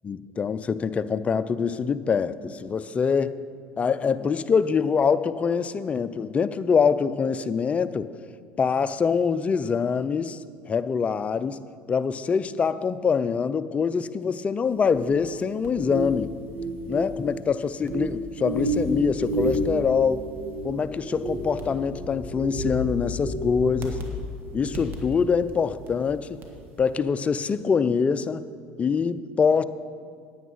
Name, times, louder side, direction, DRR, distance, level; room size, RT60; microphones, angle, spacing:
voice 1, 0.0-3.3 3.8-8.1 8.6-10.4 10.7-11.6 11.9-16.3 16.9-20.3 20.6-24.0 24.5-26.4 26.8-28.4 28.8-29.6, left 6 dB, 30° left, 13 dB, 0.5 m, -24 dB
sound 1, 14.7-26.1 26.4-26.7, right 1 dB, 50° right, 1.8 m, -31 dB
9.5 x 9.5 x 5.5 m, 2.3 s
supercardioid pair, 90°, 4 cm